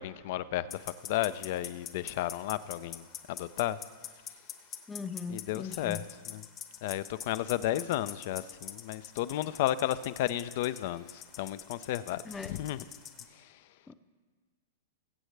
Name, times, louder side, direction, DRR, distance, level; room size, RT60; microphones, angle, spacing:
voice 1, 0.0-3.8 5.3-6.4 6.8-12.8 13.3-13.6, left 13 dB, 55° left, 0.5 m, -33 dB
sound 1, 0.7-13.2, left 8 dB, 35° left, 1.0 m, -45 dB
voice 2, 4.9-6.0 12.2-12.6 13.9-14.0, left 5 dB, 15° left, 0.6 m, -39 dB
21.5 x 8.1 x 3.3 m
hypercardioid pair, 110°, 0 cm